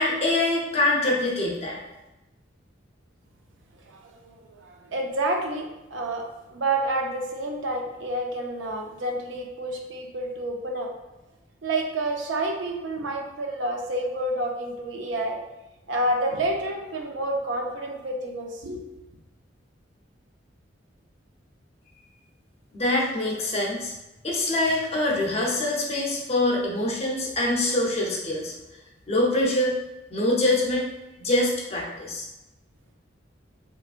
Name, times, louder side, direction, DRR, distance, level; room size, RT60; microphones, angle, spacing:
voice 1, 0.0-1.8 22.7-23.9 24.2-28.5 29.1-29.7 30.1-30.9 31.2-32.2, left 1 dB, 35° left, -3 dB, 0.7 m, -24 dB
voice 2, 3.9-6.2 6.5-10.9 11.6-15.4 15.9-18.8, right 1 dB, 85° right, 1 dB, 0.6 m, -29 dB
3.3 x 3.1 x 2.4 m, 0.98 s
head